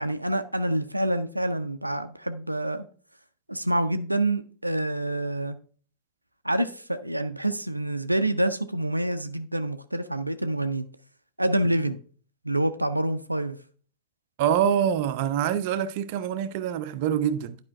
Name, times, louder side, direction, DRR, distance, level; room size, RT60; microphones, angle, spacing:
voice 1, 0.0-2.9 3.5-5.6 6.4-10.9 11.4-12.0 12.4-13.6, right 1 dB, 85° right, 0.5 m, -27 dB
voice 2, 14.4-17.6, right 9 dB, 50° right, 0.6 m, -25 dB
11.0 x 5.0 x 3.3 m
figure-of-eight pair, 90°, 0 cm